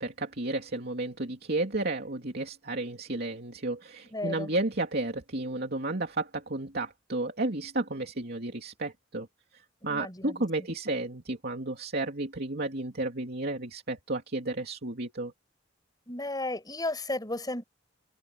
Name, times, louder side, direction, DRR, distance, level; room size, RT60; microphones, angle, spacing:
voice 1, 0.0-9.3 9.8-15.3, right 2 dB, 55° right, 2.9 m, -32 dB
voice 2, 4.1-4.5 9.9-10.4 16.1-17.6, left 2 dB, 20° left, 7.9 m, -33 dB
open air
head